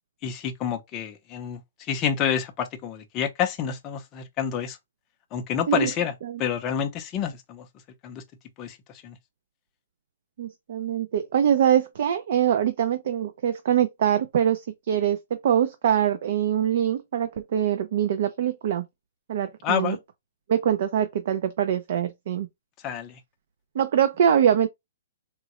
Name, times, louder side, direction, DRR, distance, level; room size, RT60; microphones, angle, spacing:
voice 1, 0.2-1.6 1.9-4.8 5.3-6.1 6.4-7.7 8.0-8.2 8.6-8.8 9.0-9.2 19.6-20.0 22.8-23.1, left 8 dB, 15° left, 0.5 m, -28 dB
voice 2, 10.4-18.8 19.3-20.0 20.5-22.5 23.7-24.7, right 9 dB, 45° right, 0.4 m, -23 dB
3.6 x 2.0 x 2.9 m
hypercardioid pair, 175°, 0 cm